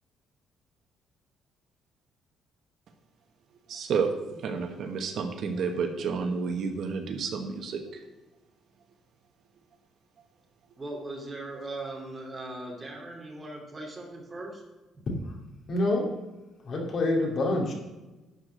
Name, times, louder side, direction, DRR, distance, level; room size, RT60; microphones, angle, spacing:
voice 1, 3.7-8.0, right 5 dB, 55° right, 5 dB, 1.2 m, -30 dB
voice 2, 10.8-14.6, right 2 dB, 20° right, -1 dB, 2.7 m, -39 dB
voice 3, 15.7-16.1 16.6-17.7, left 2 dB, 40° left, 0 dB, 2.4 m, -26 dB
11.5 x 4.8 x 7.5 m, 1.1 s
cardioid pair, 160°, 0 cm